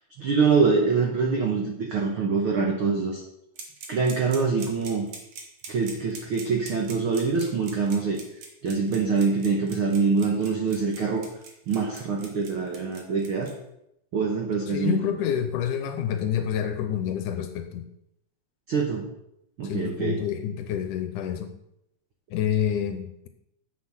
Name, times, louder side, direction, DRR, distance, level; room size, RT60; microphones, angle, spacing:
voice 1, 0.2-3.2 3.9-5.1 5.7-8.2 8.6-11.2 11.7-13.5 14.1-15.0 18.7-19.1 19.6-20.2, right 4 dB, 75° right, 1 dB, 1.2 m, -24 dB
sound 1, 3.6-13.5, right 5 dB, 60° right, 2.6 m, -42 dB
voice 2, 14.7-17.8 19.6-21.5 22.3-23.3, left 9 dB, 80° left, 8 dB, 2.1 m, -28 dB
7.9 x 6.3 x 6.0 m, 0.79 s
omnidirectional pair, 4.0 m